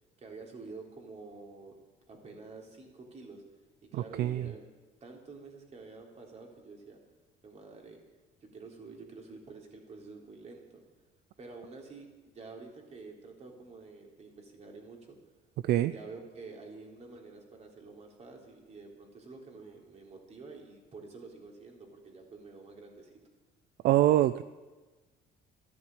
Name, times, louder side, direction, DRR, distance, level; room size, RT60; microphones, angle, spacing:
voice 1, 0.2-1.7 2.1-3.4 3.9-4.7 5.0-7.0 7.4-8.0 8.5-10.8 11.4-15.2 15.8-23.2, right 4 dB, 40° right, 1 dB, 3.6 m, -48 dB
voice 2, 3.9-4.5 15.6-15.9 23.8-24.4, right 13 dB, 70° right, 14 dB, 0.5 m, -25 dB
13.0 x 11.0 x 8.8 m, 1.3 s
cardioid pair, 110°, 17 cm